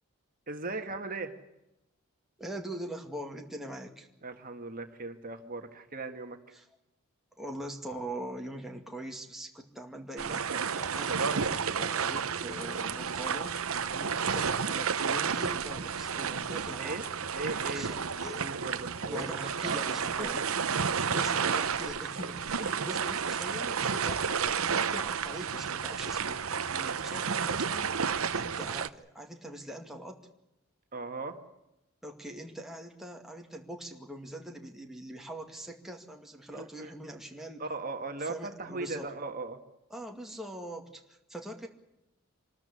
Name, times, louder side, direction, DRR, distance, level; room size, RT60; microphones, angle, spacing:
voice 1, 0.5-1.3 4.2-6.4 10.3-10.6 13.9-14.1 16.8-17.1 17.3-18.1 18.4-20.3 22.6-22.9 26.7-27.0 30.9-31.4 36.5-36.9 37.6-39.6, right 3 dB, 40° right, 5 dB, 1.7 m, -38 dB
voice 2, 2.4-4.1 6.5-6.7 7.4-10.5 10.7-13.5 14.0-17.0 17.7-18.4 19.0-20.4 21.1-28.0 28.3-30.2 32.0-37.6 38.2-39.1 39.9-41.7, right 1 dB, ahead, 1 dB, 2.3 m, -42 dB
sound 1, 10.2-28.9, right 6 dB, 65° right, 0.9 m, -31 dB
sound 2, 12.3-23.6, left 5 dB, 45° left, 3.3 m, -59 dB
26.0 x 13.5 x 9.9 m, 0.88 s
head